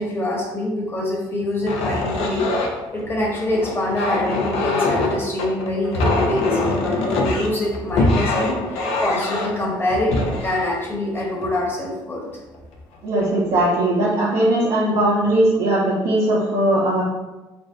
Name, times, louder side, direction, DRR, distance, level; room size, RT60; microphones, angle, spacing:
voice 1, 0.0-2.5 2.9-12.2, left 1 dB, 20° left, -3 dB, 1.0 m, -25 dB
sound 1, 1.6-11.9 12.5-12.8 13.2-13.7, left 2 dB, 75° left, 0.5 m, -24 dB
voice 2, 13.0-17.0, right 1 dB, 70° right, -7 dB, 0.8 m, -19 dB
2.6 x 2.1 x 3.4 m, 1.1 s
hypercardioid pair, 60°, 10 cm